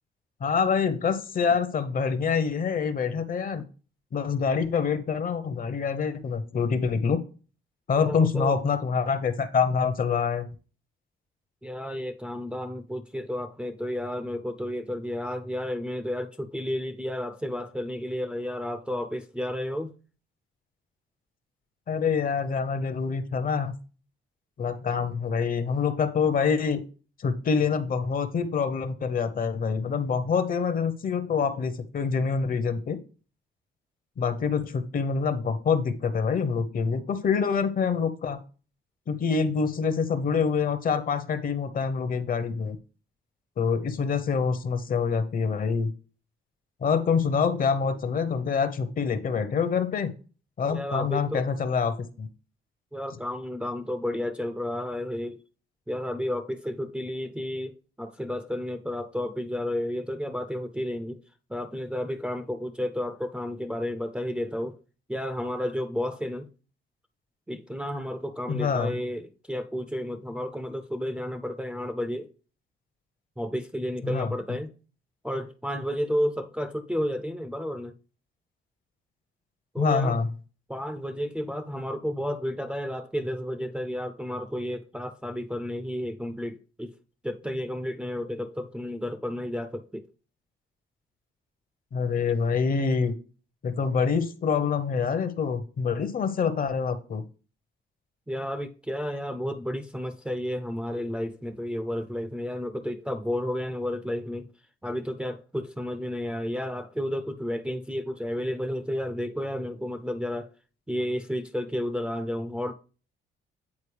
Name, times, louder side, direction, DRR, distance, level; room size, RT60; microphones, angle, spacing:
voice 1, 0.4-3.6 4.1-7.2 7.9-10.5 21.9-23.7 24.6-26.8 27.2-33.0 34.2-38.4 39.1-42.8 43.6-45.9 46.8-50.1 50.6-52.3 68.5-69.0 74.0-74.3 79.8-80.3 91.9-93.1 93.6-97.2, left 5 dB, 45° left, 0.8 m, -26 dB
voice 2, 7.9-8.5 11.6-19.9 50.7-51.4 52.9-55.4 55.9-61.2 61.5-64.8 65.1-66.5 67.5-72.3 73.4-74.7 75.2-77.9 79.7-80.2 80.7-86.9 87.2-90.1 98.3-104.5 104.8-110.5 110.9-112.7, left 1 dB, 5° right, 0.5 m, -32 dB
8.5 x 4.1 x 3.3 m
cardioid pair, 90°, 20 cm